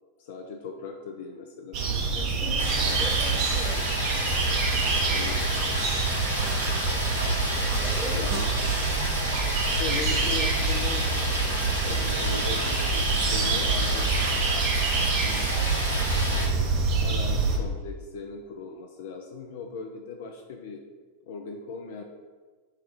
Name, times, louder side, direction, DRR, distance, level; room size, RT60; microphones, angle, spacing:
voice 1, 0.2-1.8 5.0-5.5 8.1-8.4 9.6-14.1 14.9-15.8 16.3-20.8 21.3-22.0, left 4 dB, 55° left, 3 dB, 0.3 m, -39 dB
sound 1, 1.7-17.6, right 4 dB, 40° right, 0.6 m, -26 dB
voice 2, 2.1-3.9 7.8-8.3, equal, 10° left, -3 dB, 1.0 m, -39 dB
sound 2, 2.6-16.5, equal, 90° left, 1.0 m, -31 dB
4.7 x 2.2 x 4.1 m, 1.4 s
figure-of-eight pair, 90°, 0 cm